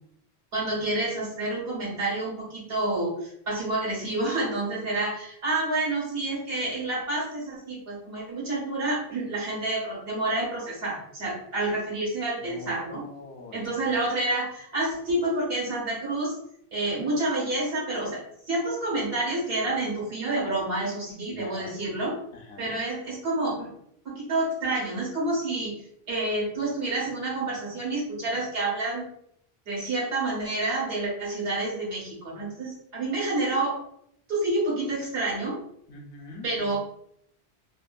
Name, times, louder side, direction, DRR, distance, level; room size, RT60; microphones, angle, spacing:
voice 1, 0.5-13.0 13.5-16.4 16.7-22.1 22.6-23.7 24.0-29.1 29.7-33.8 34.3-35.6 36.4-36.8, right 2 dB, 70° right, -4 dB, 1.3 m, -29 dB
voice 2, 12.5-13.9 21.3-21.8 22.3-22.8 35.9-36.8, left 2 dB, 70° left, 1 dB, 0.8 m, -44 dB
2.6 x 2.5 x 2.3 m, 0.72 s
omnidirectional pair, 1.1 m